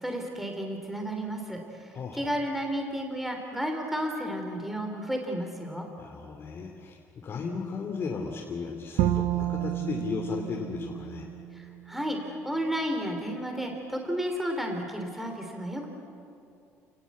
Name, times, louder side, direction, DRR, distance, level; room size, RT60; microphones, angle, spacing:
voice 1, 0.0-5.9 11.5-12.2 12.4-15.9, equal, 5° right, 3 dB, 3.2 m, -32 dB
voice 2, 1.9-2.3 6.0-11.3, left 5 dB, 40° left, 0 dB, 2.8 m, -35 dB
Bowed string instrument, 9.0-12.1, right 13 dB, 80° right, 1.1 m, -30 dB
29.0 x 19.0 x 8.5 m, 2.6 s
cardioid pair, 120°, 6 cm